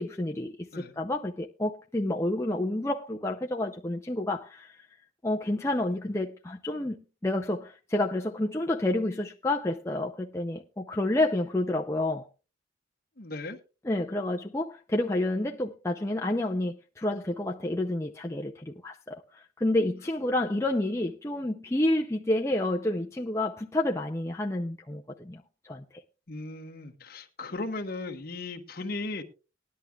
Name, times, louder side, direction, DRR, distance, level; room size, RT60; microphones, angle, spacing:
voice 1, 0.0-4.8 5.2-12.3 13.9-25.8, left 1 dB, 15° left, 0.5 m, -29 dB
voice 2, 13.2-13.6 26.3-29.2, left 2 dB, 50° left, 1.1 m, -37 dB
19.0 x 11.0 x 2.3 m
head